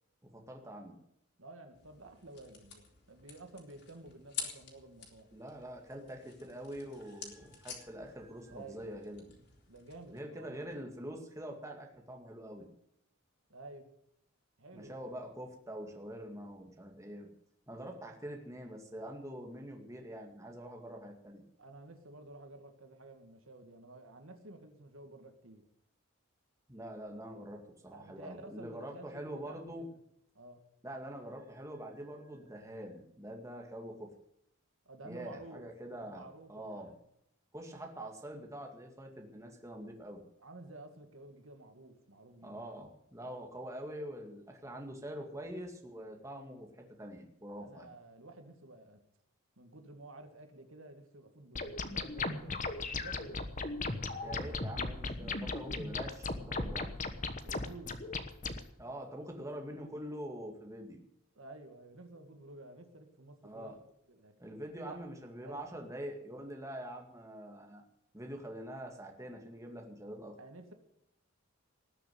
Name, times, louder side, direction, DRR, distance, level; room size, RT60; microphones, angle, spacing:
voice 1, 0.2-1.0 5.3-9.2 10.1-12.7 14.7-17.3 17.7-21.4 26.7-29.9 30.8-34.1 35.0-36.9 37.5-40.2 42.4-47.9 54.2-56.9 58.8-61.0 63.4-63.8 64.4-67.8 68.1-70.4, right 1 dB, 15° right, 2 dB, 2.1 m, -45 dB
voice 2, 1.4-5.3 8.5-8.8 9.7-10.6 13.5-13.9 14.6-15.0 21.6-25.7 27.9-30.0 30.3-30.6 34.9-35.7 36.0-37.0 40.4-42.7 47.5-49.0 49.6-52.6 53.0-53.5 53.9-54.5 57.4-58.0 61.3-63.7 64.1-64.3 64.8-65.0 65.4-65.6 70.4-70.7, right 2 dB, 70° right, 6 dB, 2.0 m, -52 dB
sound 1, 1.7-10.2, left 6 dB, 50° left, 3.8 m, -49 dB
sound 2, 51.6-58.6, left 3 dB, 35° left, 1.2 m, -37 dB
19.5 x 6.8 x 9.2 m, 0.76 s
head